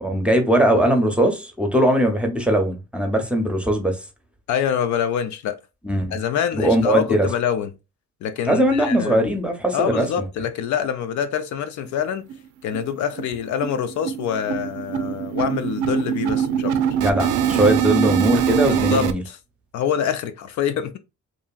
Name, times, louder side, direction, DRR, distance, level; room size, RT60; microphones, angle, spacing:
voice 1, 0.0-4.0 5.8-6.1 6.5-7.3 8.5-10.2 17.0-19.2, right 1 dB, 5° right, 0.7 m, -20 dB
voice 2, 4.5-5.6 6.1-7.7 8.2-9.3 9.7-12.3 12.6-16.8 18.7-19.4 19.7-21.0, left 8 dB, 70° left, 0.5 m, -25 dB
sound 1, 11.9-12.0 12.3-12.4 12.7-12.9 13.2-19.1, right 9 dB, 80° right, 0.4 m, -23 dB
2.8 x 2.5 x 2.3 m
cardioid pair, 90°, 30 cm